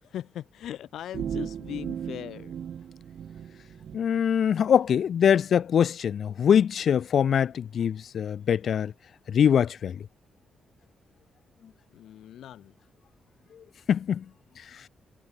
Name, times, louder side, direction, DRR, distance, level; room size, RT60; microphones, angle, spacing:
voice 1, 0.0-2.6 11.9-12.7, left 11 dB, 90° left, 1.8 m, -39 dB
sound 1, 1.1-4.0, right 8 dB, 60° right, 0.6 m, -36 dB
voice 2, 3.9-8.9 9.3-10.0 13.9-14.2, left 8 dB, 55° left, 0.6 m, -23 dB
wide cardioid pair, 150°, 0 cm